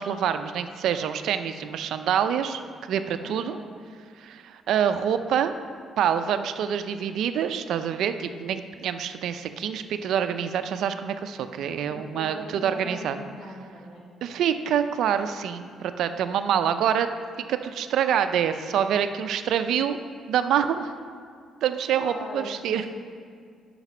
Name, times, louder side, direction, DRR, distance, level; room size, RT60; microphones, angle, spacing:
voice 1, 0.0-2.6 2.9-3.6 4.2-5.5 6.0-13.2 14.2-17.1 17.5-20.0 20.3-20.9 21.6-22.8, right 8 dB, 75° right, 9 dB, 0.5 m, -26 dB
voice 2, 3.2-3.7 11.9-14.2 22.0-22.9, left 1 dB, 45° left, -3 dB, 2.4 m, -40 dB
8.9 x 5.9 x 6.0 m, 2.1 s
cardioid pair, 90°, 0 cm